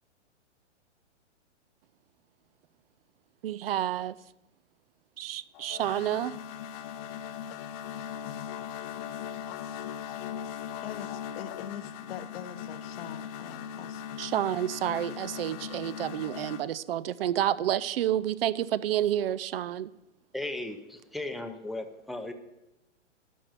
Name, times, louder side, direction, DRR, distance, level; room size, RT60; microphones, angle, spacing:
voice 1, 3.4-4.2 5.2-6.3 14.2-19.9, right 11 dB, 55° right, 17 dB, 0.5 m, -29 dB
sound 1, 5.5-16.6, left 9 dB, 35° left, 0.8 m, -39 dB
voice 2, 10.8-14.0, left 9 dB, 55° left, 10 dB, 1.1 m, -42 dB
voice 3, 20.3-22.3, left 2 dB, ahead, 5 dB, 0.7 m, -36 dB
12.0 x 6.0 x 9.0 m, 0.90 s
hypercardioid pair, 130°, 36 cm